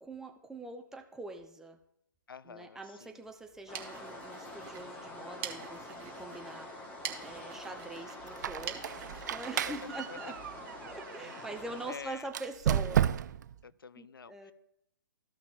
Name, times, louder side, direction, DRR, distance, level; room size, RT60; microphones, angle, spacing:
voice 1, 0.0-1.8 2.4-10.4 10.8-13.1 14.0-14.5, right 2 dB, 5° right, 4 dB, 0.7 m, -44 dB
voice 2, 2.3-3.3 10.1-10.3 11.9-12.3 13.6-14.5, left 6 dB, 85° left, 17 dB, 0.5 m, -48 dB
sound 1, 3.4-10.9, right 10 dB, 35° right, 1.2 m, -47 dB
sound 2, 3.7-12.0, left 1 dB, 15° left, 1.3 m, -46 dB
Squeak, 8.3-11.5 12.3-13.5, right 10 dB, 55° right, 0.4 m, -33 dB
14.5 x 5.8 x 2.5 m, 0.77 s
hypercardioid pair, 135°, 11 cm